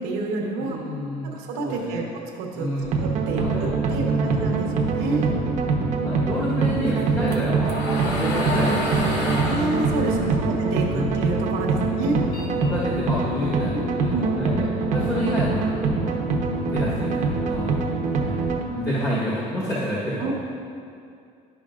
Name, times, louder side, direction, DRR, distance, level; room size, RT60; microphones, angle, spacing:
voice 1, 0.0-0.8 1.2-2.0 2.4-2.7 3.0-5.3 9.4-12.2 14.1-14.3 20.2-20.3, right 3 dB, 85° right, -1 dB, 1.0 m, -29 dB
voice 2, 0.6-1.3 1.6-2.0 2.5-3.0 3.3-4.6 5.3-5.7 6.0-9.7 10.0-10.5 10.9-11.1 11.5-12.2 12.6-16.1 16.5-20.3, equal, 20° left, -9 dB, 1.2 m, -30 dB
sound 1, 2.8-18.6, right 4 dB, 55° right, 0.8 m, -24 dB
sound 2, 6.9-11.4 11.8-13.3, left 2 dB, 80° left, 1.1 m, -30 dB
11.5 x 5.2 x 2.4 m, 2.4 s
cardioid pair, 140°, 16 cm